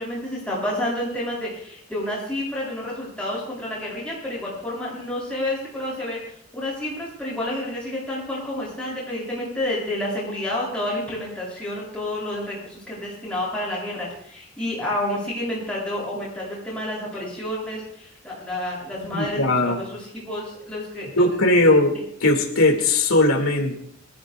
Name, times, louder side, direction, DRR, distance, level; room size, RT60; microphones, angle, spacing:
voice 1, 0.0-21.3 21.6-21.7, left 1 dB, 5° left, -6 dB, 7.9 m, -30 dB
voice 2, 19.1-19.8 21.2-21.9 22.2-23.8, left 2 dB, 90° left, 3 dB, 2.3 m, -19 dB
25.5 x 15.0 x 2.5 m, 0.67 s
head